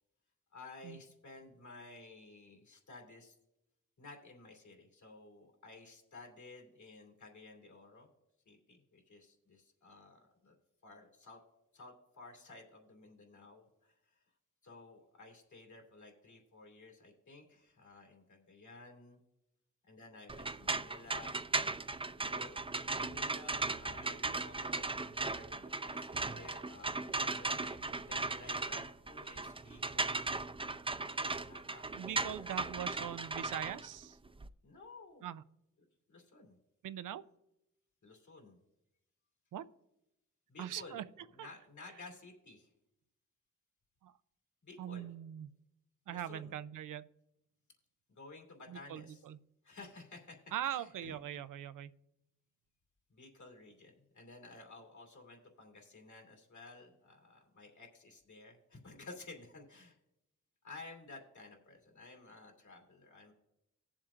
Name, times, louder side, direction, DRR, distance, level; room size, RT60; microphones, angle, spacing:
voice 1, 0.5-3.4 4.0-8.1 8.4-10.5 10.8-11.4 11.7-14.2 14.6-19.2 19.8-21.4 22.3-27.8 28.1-30.3 31.0-31.8 32.3-32.4 32.8-32.9 34.6-35.2 36.1-36.6 38.0-38.6 40.5-41.0 41.3-42.7 44.6-45.1 46.1-46.5 48.1-49.2 49.6-51.2 53.1-60.0 60.6-63.3, left 3 dB, 65° left, 1 dB, 2.8 m, -54 dB
sound 1, 20.3-34.5, right 3 dB, 20° right, 0.5 m, -37 dB
voice 2, 32.0-34.2 35.2-35.4 36.8-37.2 39.5-39.7 40.6-41.0 41.4-41.5 44.0-44.2 44.8-45.5 46.1-47.1 48.7-49.4 50.5-51.9, right 11 dB, 90° right, 14 dB, 0.5 m, -41 dB
18.5 x 7.3 x 2.5 m, 0.85 s
cardioid pair, 50°, 31 cm